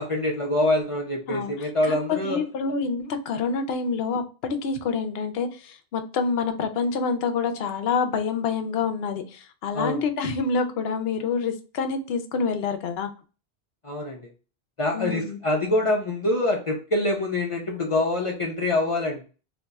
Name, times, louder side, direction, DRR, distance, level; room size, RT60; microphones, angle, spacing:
voice 1, 0.0-2.4 9.7-10.0 13.8-14.3 14.8-19.2, left 1 dB, 40° left, 0 dB, 0.5 m, -25 dB
voice 2, 1.3-2.0 2.2-13.1 14.9-15.4, left 5 dB, 75° left, 7 dB, 0.8 m, -27 dB
2.6 x 2.3 x 4.0 m, 0.36 s
omnidirectional pair, 1.1 m